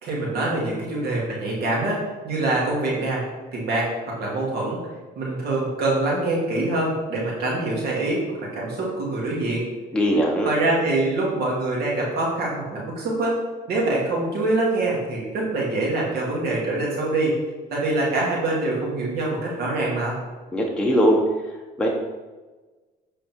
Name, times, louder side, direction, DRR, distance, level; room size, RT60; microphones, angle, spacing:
voice 1, 0.0-3.2 3.5-4.8 5.2-9.7 10.4-13.4 13.7-17.3 17.7-20.2, right 2 dB, 70° right, -3 dB, 2.6 m, -24 dB
voice 2, 9.9-10.5 20.5-21.2 21.8-21.9, equal, 5° left, -2 dB, 1.2 m, -20 dB
8.1 x 4.9 x 4.6 m, 1.3 s
cardioid pair, 110°, 17 cm